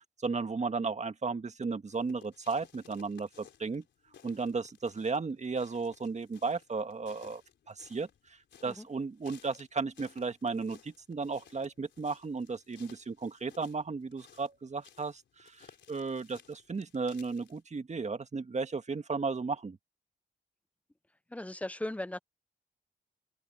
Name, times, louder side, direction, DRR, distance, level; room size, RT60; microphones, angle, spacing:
voice 1, 0.0-3.8 4.2-7.4 7.7-19.8, right 4 dB, 40° right, 1.8 m, -35 dB
sound 1, 1.9-17.6, left 8 dB, 80° left, 4.1 m, -60 dB
voice 2, 21.3-22.2, left 1 dB, 5° left, 0.6 m, -37 dB
open air
cardioid pair, 65°, 19 cm